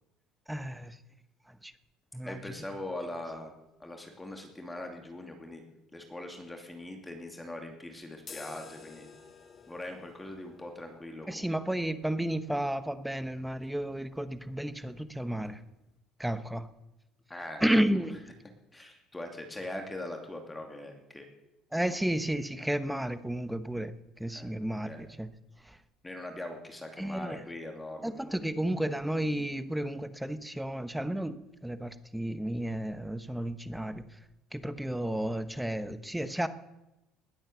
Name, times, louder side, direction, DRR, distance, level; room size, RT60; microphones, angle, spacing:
voice 1, 0.5-1.0 1.6-1.7 2.1-2.5 11.3-15.6 16.2-16.7 17.6-18.3 21.7-25.3 25.6-25.8 27.0-27.4 28.0-34.0 34.5-36.5, right 1 dB, 5° right, 12 dB, 1.1 m, -32 dB
voice 2, 2.2-3.5 3.8-5.6 5.9-9.0 9.7-11.5 17.3-17.6 17.9-18.0 18.7-21.3 24.3-24.5 24.8-25.1 26.0-28.4, left 1 dB, 10° left, 3 dB, 2.7 m, -41 dB
sound 1, 8.2-16.0, left 5 dB, 35° left, 1.6 m, -54 dB
20.0 x 8.9 x 8.0 m, 0.94 s
cardioid pair, 110°, 0 cm